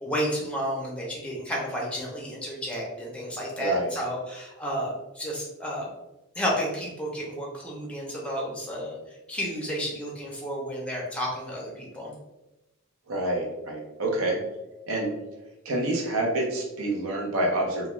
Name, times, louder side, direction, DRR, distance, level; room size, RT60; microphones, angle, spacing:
voice 1, 0.0-5.9 6.4-12.1, equal, 5° left, -3 dB, 0.5 m, -31 dB
voice 2, 3.6-3.9 13.1-14.4 14.9-15.1 15.6-17.9, right 1 dB, 75° right, 0 dB, 0.6 m, -27 dB
2.3 x 2.1 x 3.0 m, 0.99 s
head